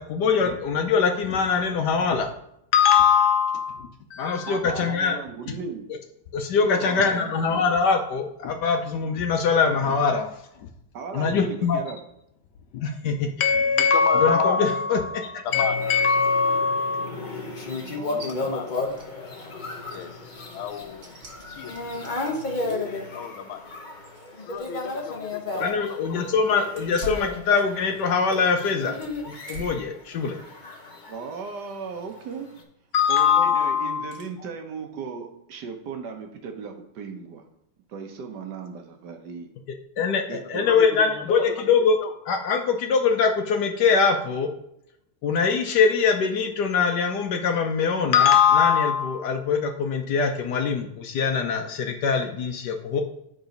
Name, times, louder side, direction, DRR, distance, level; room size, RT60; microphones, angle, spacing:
voice 1, 0.0-2.3 2.7-5.2 6.3-10.3 11.1-11.8 12.7-17.1 25.6-29.0 29.2-30.4 32.9-34.1 40.0-42.0 42.3-44.5 45.2-53.0, left 5 dB, 65° left, 5 dB, 1.1 m, -22 dB
voice 2, 4.4-5.9 6.6-7.7 10.9-12.0 17.8-18.5 31.1-32.6 33.1-37.4 37.9-39.5 40.0-40.6, right 5 dB, 65° right, 5 dB, 1.3 m, -36 dB
voice 3, 13.5-14.7 15.4-15.9 18.2-18.9 19.9-21.1 21.4-21.8 22.6-23.7 24.3-26.2 26.5-26.8 27.1-27.2 30.9-31.0 40.6-42.1, left 8 dB, 85° left, 9 dB, 1.5 m, -35 dB
sound 1, 15.5-31.7 32.1-32.6, left 2 dB, 40° left, 0.7 m, -34 dB
sound 2, 18.2-18.3 18.7-19.1 19.4-19.5 19.8-23.0 23.5-24.9 25.1-25.2 26.7-28.1 28.4-29.9 30.4-30.7 32.1-32.4 32.9-33.3 34.1-34.3, right 1 dB, 45° right, 1.6 m, -44 dB
9.2 x 4.0 x 5.2 m, 0.80 s
omnidirectional pair, 2.2 m